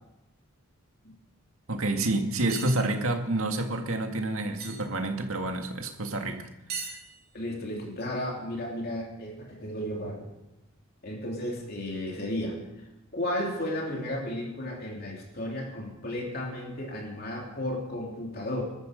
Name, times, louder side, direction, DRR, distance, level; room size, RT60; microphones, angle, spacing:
voice 1, 1.7-6.5 6.7-6.9, right 2 dB, 75° right, 4 dB, 2.0 m, -29 dB
sound 1, 2.5-2.8 4.6-4.8 6.7-7.5, right 5 dB, 45° right, 3.4 m, -37 dB
voice 2, 7.3-10.3 11.0-12.6 13.1-18.6, left 1 dB, 45° left, -1 dB, 3.2 m, -33 dB
21.0 x 13.0 x 5.2 m, 0.92 s
head